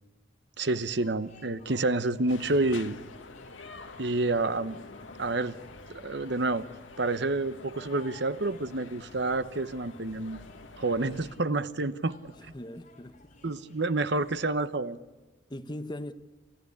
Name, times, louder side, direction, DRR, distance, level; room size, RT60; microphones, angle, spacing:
voice 1, 0.6-3.0 4.0-4.8 5.2-5.5 6.0-6.6 7.0-10.4 10.8-12.1 13.4-15.0, right 2 dB, 60° right, 13 dB, 1.0 m, -28 dB
sound 1, 0.9-14.4, left 2 dB, 40° left, 4.3 m, -56 dB
sound 2, 2.3-11.3, left 3 dB, 85° left, 1.5 m, -48 dB
voice 2, 12.3-13.4 15.5-16.1, left 1 dB, 25° left, 10 dB, 1.1 m, -40 dB
29.5 x 14.5 x 9.8 m, 1.3 s
head